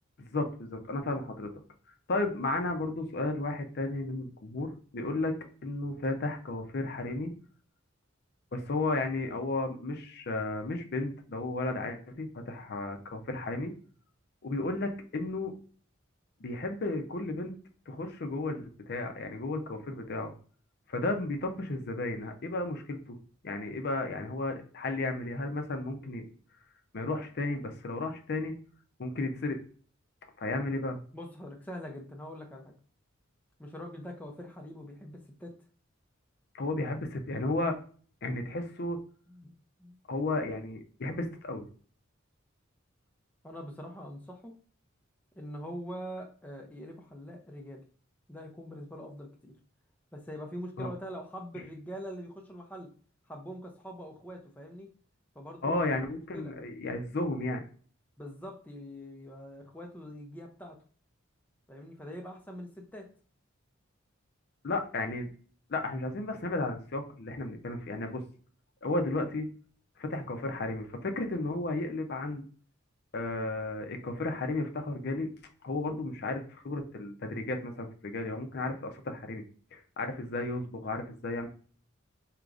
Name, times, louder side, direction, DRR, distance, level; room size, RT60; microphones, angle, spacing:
voice 1, 0.2-1.5 2.1-5.4 5.6-7.3 8.5-13.7 14.4-15.5 16.4-17.5 17.9-20.3 20.9-23.2 23.4-26.2 26.9-28.5 29.0-29.6 30.4-31.0 36.5-37.8 38.2-39.0 40.1-41.7 50.8-50.9 55.6-57.6 64.6-65.3 65.7-68.2 68.8-69.5 70.0-72.4 73.1-75.3 75.6-79.4 79.7-81.5, left 2 dB, 55° left, 5 dB, 0.6 m, -33 dB
voice 2, 31.1-32.7 33.6-35.5 39.3-39.5 39.8-40.0 43.4-44.6 45.4-47.8 48.3-49.5 50.1-52.9 53.3-54.9 55.3-55.8 56.1-56.5 58.2-60.8 61.7-63.1, equal, 10° left, 2 dB, 0.5 m, -43 dB
4.7 x 2.9 x 2.5 m, 0.43 s
head